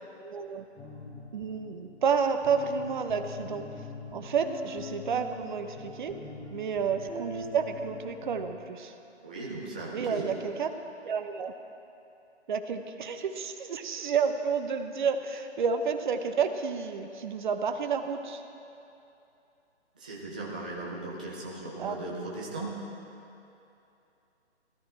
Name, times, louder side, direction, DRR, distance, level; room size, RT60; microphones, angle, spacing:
voice 1, 0.2-0.6 1.3-3.7 4.1-6.1 6.5-8.9 9.9-10.7 11.0-11.5 12.5-18.4 21.8-21.9, right 6 dB, 40° right, 7 dB, 0.9 m, -30 dB
sound 1, 0.8-8.5, left 3 dB, 10° left, 1.1 m, -44 dB
voice 2, 9.2-10.3 19.9-22.8, right 2 dB, 5° right, -5 dB, 0.4 m, -37 dB
18.0 x 13.0 x 4.3 m, 2.8 s
figure-of-eight pair, 145°, 35 cm